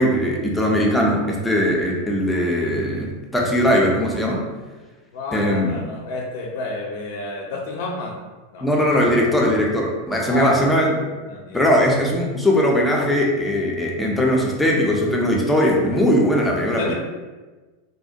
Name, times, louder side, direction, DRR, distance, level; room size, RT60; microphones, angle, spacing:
voice 1, 0.0-4.4 5.3-5.8 8.6-10.9 11.5-16.9, equal, 10° left, -2 dB, 0.5 m, -19 dB
voice 2, 5.1-8.2 8.5-9.4 10.3-10.6 11.2-11.7 16.7-16.9, left 2 dB, 55° left, 0 dB, 0.5 m, -30 dB
2.4 x 2.1 x 2.6 m, 1.3 s
figure-of-eight pair, 85°, 0 cm